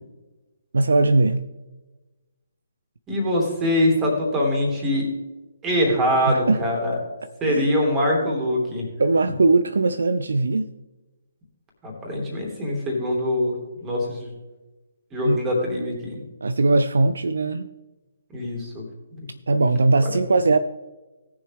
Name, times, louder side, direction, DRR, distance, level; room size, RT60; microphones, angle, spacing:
voice 1, 0.7-1.4 6.3-6.6 7.5-7.7 9.0-10.7 15.3-15.4 16.4-17.7 19.5-20.6, right 3 dB, 60° right, 0.5 m, -20 dB
voice 2, 3.1-5.1 5.6-7.0 7.4-8.8 11.8-13.5 13.8-14.3 15.1-16.2 18.3-18.8 19.1-19.3, left 1 dB, 15° right, 3.0 m, -23 dB
18.0 x 6.9 x 3.5 m
figure-of-eight pair, 135°, 0 cm